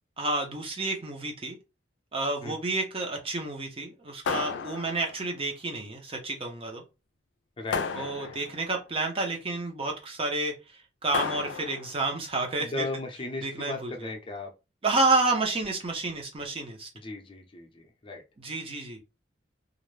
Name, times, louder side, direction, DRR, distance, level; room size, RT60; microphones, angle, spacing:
voice 1, 0.2-1.6 2.1-6.8 7.9-12.8 13.4-14.1 14.8-16.9 18.4-19.0, right 2 dB, 30° right, 1 dB, 0.7 m, -30 dB
sound 1, 4.3-5.3 7.7-8.7 11.1-12.0, left 5 dB, 90° left, 0.4 m, -33 dB
voice 2, 7.6-8.4 12.6-14.5 16.9-18.2, left 2 dB, 30° left, 3 dB, 0.6 m, -37 dB
2.5 x 2.1 x 3.1 m, 0.27 s
head